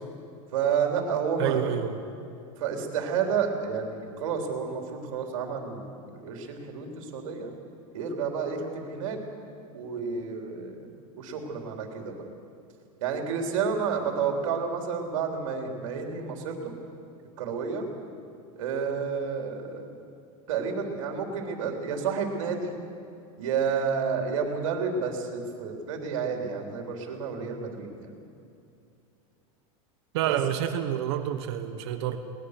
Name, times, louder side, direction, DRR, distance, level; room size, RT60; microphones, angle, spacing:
voice 1, 0.5-1.8 2.6-7.5 7.9-9.2 9.7-10.9 11.2-12.2 13.0-16.7 17.4-17.8 18.6-20.0 20.5-22.7 23.4-28.1 30.3-30.4, right 6 dB, 65° right, 2 dB, 3.6 m, -30 dB
voice 2, 1.4-2.0 30.1-32.2, right 10 dB, 50° right, 8 dB, 1.2 m, -28 dB
22.5 x 19.5 x 6.7 m, 2.6 s
supercardioid pair, 175°, 18 cm